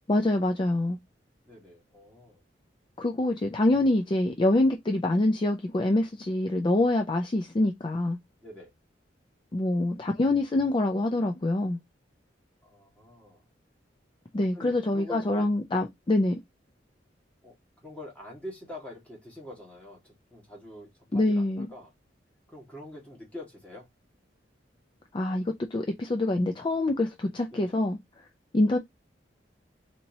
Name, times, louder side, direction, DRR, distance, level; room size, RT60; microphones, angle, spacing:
voice 1, 0.1-1.0 3.0-8.2 9.5-11.8 14.3-16.4 21.1-21.7 25.1-28.0 28.5-28.8, left 2 dB, 25° left, 0.4 m, -25 dB
voice 2, 1.4-2.4 8.4-8.7 12.6-13.4 14.4-15.5 17.4-17.5 17.8-21.9 22.5-23.9 27.5-27.7, left 1 dB, 10° left, 1.7 m, -45 dB
4.1 x 2.9 x 2.7 m
head